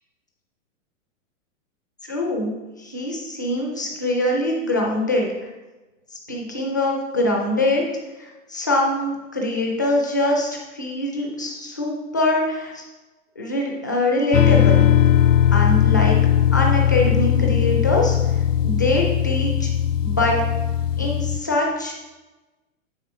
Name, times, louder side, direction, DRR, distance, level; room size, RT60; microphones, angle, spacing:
voice 1, 2.0-2.5 2.8-5.3 6.3-7.8 8.2-12.9 13.4-14.8 15.5-16.2 16.5-18.2 18.6-19.7 20.0-20.4 21.0-21.9, left 1 dB, 15° left, -1 dB, 0.4 m, -23 dB
sound 1, 14.3-21.4, left 10 dB, 70° left, 0.7 m, -18 dB
7.2 x 7.0 x 4.8 m, 1.1 s
hypercardioid pair, 180°, 39 cm